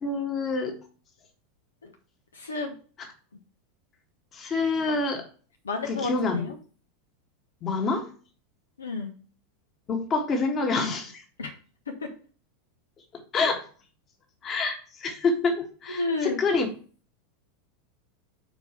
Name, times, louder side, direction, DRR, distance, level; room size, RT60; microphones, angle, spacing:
voice 1, 0.0-0.8 4.3-5.2 5.8-6.5 7.6-8.1 9.9-11.2 13.1-13.6 14.4-16.7, left 3 dB, 30° left, 4 dB, 1.6 m, -27 dB
voice 2, 2.3-2.7 5.6-6.5 8.8-9.1 11.4-11.5 12.0-12.1 15.9-16.4, left 3 dB, 75° left, 3 dB, 0.9 m, -31 dB
5.1 x 4.6 x 5.7 m, 0.39 s
figure-of-eight pair, 85°, 0 cm